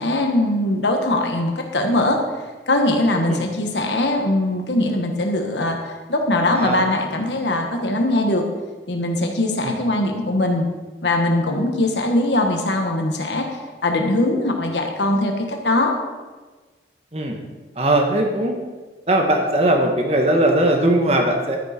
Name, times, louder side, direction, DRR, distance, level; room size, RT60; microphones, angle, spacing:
voice 1, 0.0-2.2 2.7-8.4 8.9-10.6 11.0-15.9, left 1 dB, 90° left, 3 dB, 1.7 m, -21 dB
voice 2, 17.8-18.5 19.1-21.6, right 1 dB, 35° right, 3 dB, 1.5 m, -19 dB
12.5 x 9.6 x 4.4 m, 1.3 s
head